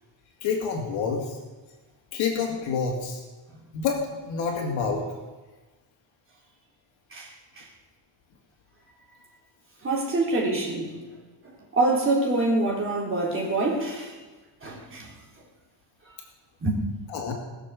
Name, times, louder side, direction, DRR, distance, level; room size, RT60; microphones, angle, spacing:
voice 1, 0.4-1.4 2.1-3.2 3.7-5.1 17.1-17.3, left 5 dB, 70° left, 1 dB, 2.5 m, -28 dB
voice 2, 7.1-7.7 9.8-10.9 11.4-14.1 14.6-15.1 16.6-16.8, right 2 dB, 25° right, -2 dB, 3.6 m, -26 dB
20.5 x 6.9 x 7.1 m, 1.2 s
cardioid pair, 155°, 47 cm